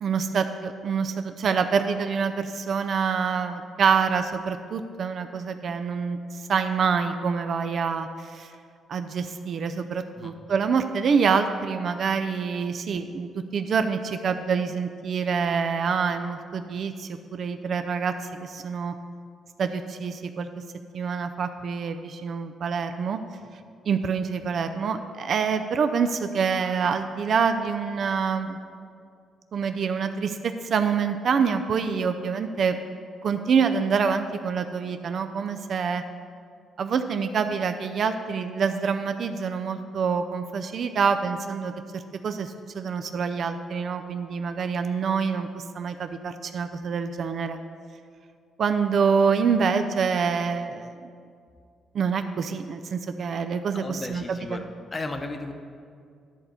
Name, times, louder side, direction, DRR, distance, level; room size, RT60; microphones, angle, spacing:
voice 1, 0.0-6.2 6.5-8.5 8.9-18.1 18.4-18.9 19.6-20.5 20.9-23.2 23.9-28.6 29.5-32.8 33.2-36.0 36.8-47.6 48.6-51.1 51.9-54.4, right 6 dB, 55° right, 8 dB, 0.4 m, -26 dB
voice 2, 53.7-54.6 54.9-55.5, left 2 dB, 30° left, 6 dB, 0.8 m, -34 dB
10.5 x 4.2 x 6.8 m, 2.2 s
cardioid pair, 90°, 0 cm